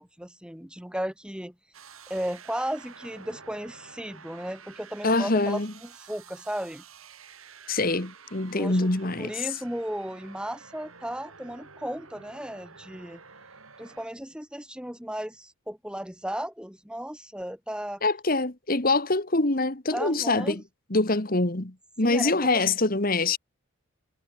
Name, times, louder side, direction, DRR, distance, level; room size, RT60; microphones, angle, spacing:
voice 1, 0.0-1.5 2.1-6.8 8.5-8.9 9.2-13.2 13.8-18.0 19.9-20.6 22.0-22.6, equal, 5° right, 1.7 m, -35 dB
sound 1, 1.7-14.1, right 5 dB, 85° right, 6.9 m, -50 dB
voice 2, 5.0-5.7 7.7-9.3 18.0-20.6 20.9-23.4, left 2 dB, 40° left, 1.7 m, -25 dB
head